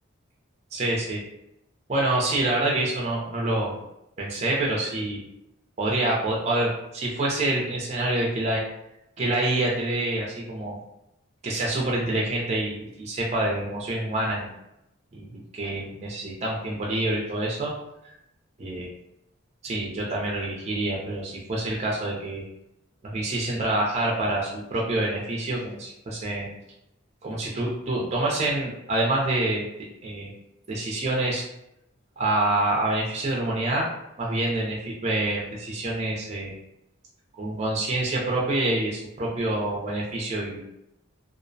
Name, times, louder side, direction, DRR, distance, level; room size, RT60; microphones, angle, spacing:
voice 1, 0.7-1.2 1.9-3.8 4.2-5.2 5.8-8.6 9.2-10.8 11.4-14.5 15.1-17.7 18.0-18.1 18.6-18.9 19.6-22.4 23.0-26.5 27.2-29.7 30.0-30.3 30.7-31.4 32.2-33.9 34.2-36.5 37.4-40.6, right 2 dB, 30° right, -3 dB, 0.4 m, -27 dB
2.5 x 2.0 x 2.6 m, 0.83 s
head